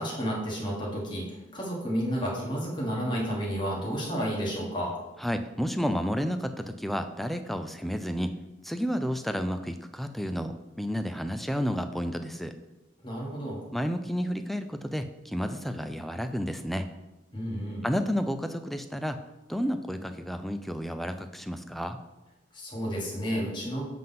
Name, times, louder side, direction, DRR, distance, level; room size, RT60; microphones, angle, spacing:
voice 1, 0.0-4.9 13.0-13.6 17.3-17.9 22.5-23.8, equal, 25° left, -4 dB, 1.6 m, -31 dB
voice 2, 5.2-8.4 8.6-12.5 13.7-16.9 17.8-19.2 19.5-22.0, equal, ahead, 8 dB, 0.4 m, -31 dB
7.5 x 3.8 x 5.7 m, 1.0 s
head